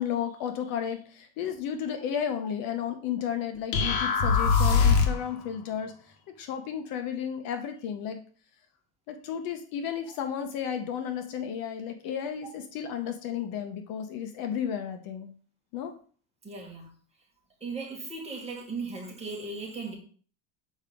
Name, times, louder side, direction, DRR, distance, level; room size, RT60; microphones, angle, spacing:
voice 1, 0.0-5.9 6.4-8.2 9.1-15.3 15.7-15.9, left 8 dB, 55° left, 0.9 m, -33 dB
sound 1, 3.7-5.3, left 5 dB, 80° left, 1.4 m, -22 dB
voice 2, 16.4-16.9 17.6-19.9, right 3 dB, 15° right, 1.8 m, -37 dB
6.4 x 5.0 x 3.6 m
cardioid pair, 160°, 43 cm